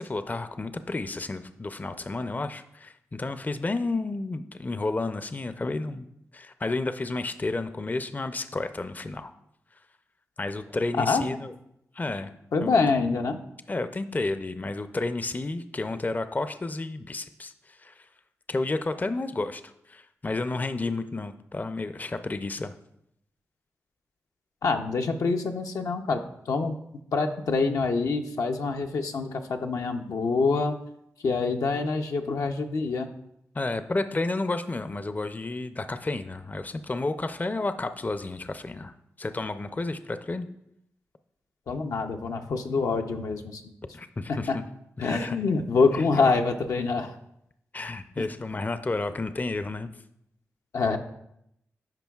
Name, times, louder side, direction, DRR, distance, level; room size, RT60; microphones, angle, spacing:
voice 1, 0.0-6.1 6.3-9.3 10.4-11.5 11.9-12.3 12.6-12.8 13.7-18.1 18.5-22.7 33.5-40.5 43.9-44.6 45.0-45.4 45.9-46.4 47.7-49.9, left 2 dB, 30° left, 10 dB, 0.4 m, -31 dB
voice 2, 12.5-13.4 24.6-26.2 26.5-26.7 27.1-30.8 31.2-33.1 41.7-43.6 44.3-44.6 45.0-47.1 48.2-48.3 50.7-51.0, left 4 dB, 75° left, 4 dB, 0.5 m, -26 dB
10.5 x 5.1 x 2.3 m, 0.79 s
supercardioid pair, 40°, 6 cm